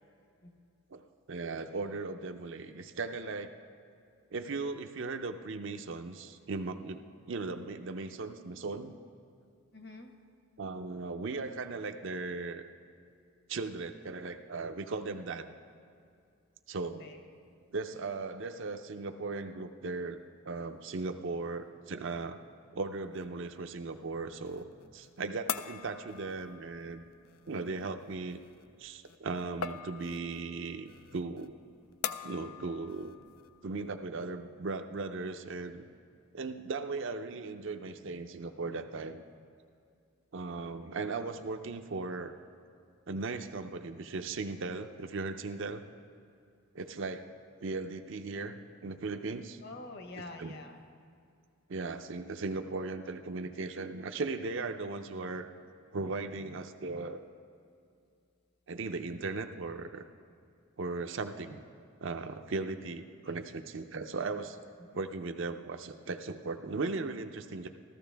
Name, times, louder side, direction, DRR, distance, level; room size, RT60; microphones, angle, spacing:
voice 1, 1.3-3.5 4.3-7.0 7.3-8.9 10.6-12.6 13.5-15.5 16.7-17.1 17.7-20.2 20.4-22.4 22.7-27.0 27.5-28.4 28.8-31.6 32.2-33.2 33.6-35.9 36.3-39.2 40.3-42.3 43.1-45.8 46.7-47.2 47.6-49.6 50.4-50.5 51.7-55.5 55.9-57.2 58.7-60.0 60.8-61.6 62.0-64.6 64.9-67.7, right 3 dB, 55° right, 7 dB, 0.5 m, -37 dB
voice 2, 9.7-10.1 17.0-17.2 49.6-50.8 63.2-63.4 64.8-64.9, left 2 dB, 50° left, 5 dB, 1.0 m, -46 dB
sound 1, 23.1-34.0, left 8 dB, 75° left, 0.4 m, -44 dB
14.5 x 14.0 x 3.4 m, 2.4 s
head